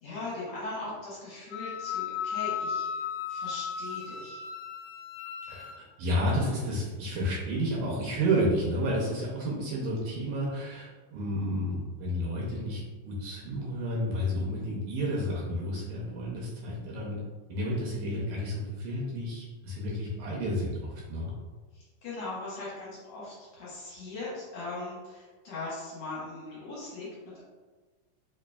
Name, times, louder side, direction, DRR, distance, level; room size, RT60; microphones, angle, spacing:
voice 1, 0.0-4.4 21.7-27.4, left 2 dB, 65° left, -8 dB, 2.0 m, -40 dB
Wind instrument woodwind instrument, 1.5-5.8, left 8 dB, 80° left, 2.0 m, -35 dB
voice 2, 5.5-17.2 17.5-21.3, equal, 75° right, -4 dB, 1.9 m, -31 dB
5.0 x 2.8 x 2.2 m, 1.3 s
omnidirectional pair, 3.8 m